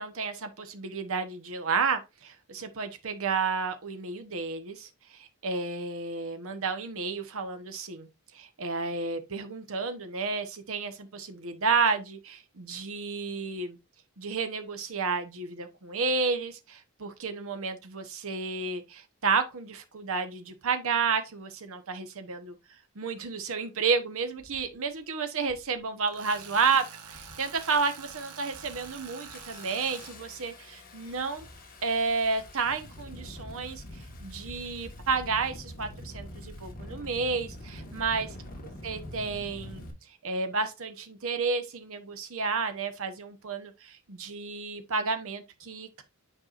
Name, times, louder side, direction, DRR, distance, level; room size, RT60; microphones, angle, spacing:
voice 1, 0.0-8.1 8.3-13.8 14.2-22.6 22.9-31.5 31.8-33.8 34.2-38.3 38.8-39.8 40.2-46.0, right 4 dB, 65° right, 1.1 m, -31 dB
Engine starting, 23.6-23.7 24.4-24.7 25.4-25.7 26.1-26.6 27.1-27.6 28.0-28.2 28.5-39.9, left 1 dB, 40° left, 1.6 m, -45 dB
Tools, 26.1-30.1, right 6 dB, 85° right, 1.2 m, -46 dB
9.0 x 4.7 x 2.5 m
head